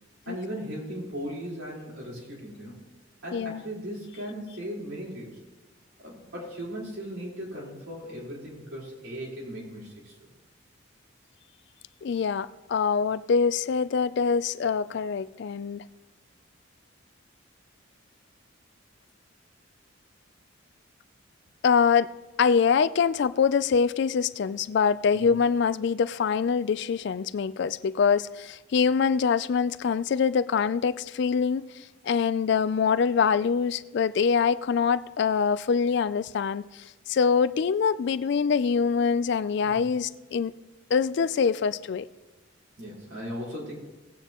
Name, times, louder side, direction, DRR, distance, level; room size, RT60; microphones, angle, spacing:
voice 1, 0.3-2.8 3.2-5.4 6.0-10.1 25.2-25.4 39.6-39.9 42.8-43.7, equal, 80° right, 4.2 m, -37 dB
voice 2, 12.0-15.9 21.6-22.1 22.4-40.5 40.9-42.1, left 6 dB, 60° left, 0.3 m, -24 dB
18.0 x 9.1 x 3.0 m
head